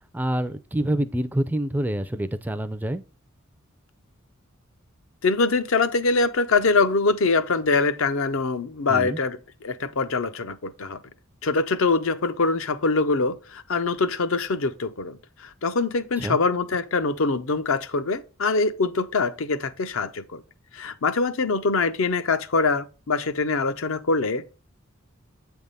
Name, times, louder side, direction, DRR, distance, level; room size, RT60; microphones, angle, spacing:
voice 1, 0.1-3.0 8.9-9.2 16.2-16.4, right 1 dB, 10° right, 0.3 m, -26 dB
voice 2, 5.2-11.0 11.4-20.4 20.7-24.5, left 3 dB, 70° left, 0.6 m, -24 dB
8.1 x 3.5 x 5.4 m
head